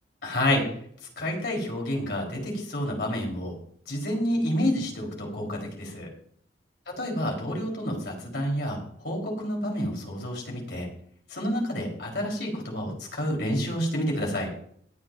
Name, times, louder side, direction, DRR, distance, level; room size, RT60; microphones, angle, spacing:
voice 1, 0.2-0.7 1.2-3.5 3.9-6.1 7.0-8.8 9.0-10.9 11.3-14.5, equal, 70° left, 0 dB, 3.8 m, -29 dB
22.0 x 8.4 x 2.6 m, 0.63 s
head